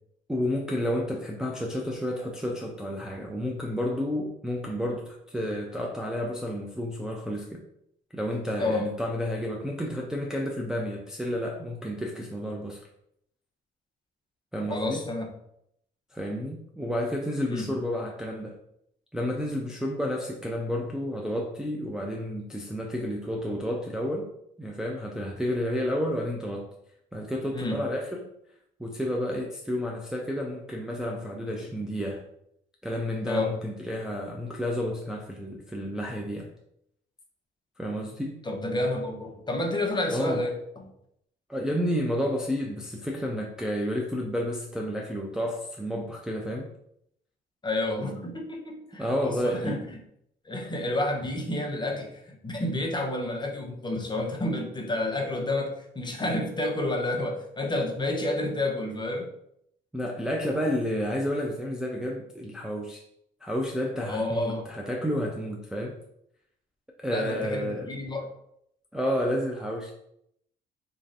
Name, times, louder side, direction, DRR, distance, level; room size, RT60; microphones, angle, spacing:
voice 1, 0.3-7.6 8.1-12.8 14.5-15.0 16.1-18.6 19.1-24.3 24.6-26.7 27.1-28.3 28.8-32.2 32.8-36.5 37.8-38.4 40.1-40.4 41.5-46.7 48.9-49.8 59.9-63.0 63.4-65.9 67.0-67.9 68.9-69.9, equal, 5° right, -1 dB, 0.4 m, -31 dB
voice 2, 8.6-8.9 14.7-15.3 17.5-17.7 27.5-27.8 33.2-33.6 38.4-40.9 47.6-50.0 50.4-59.3 64.0-64.7 67.1-68.3, left 2 dB, 20° left, 2 dB, 0.8 m, -30 dB
3.0 x 2.7 x 4.0 m, 0.75 s
cardioid pair, 90°, 20 cm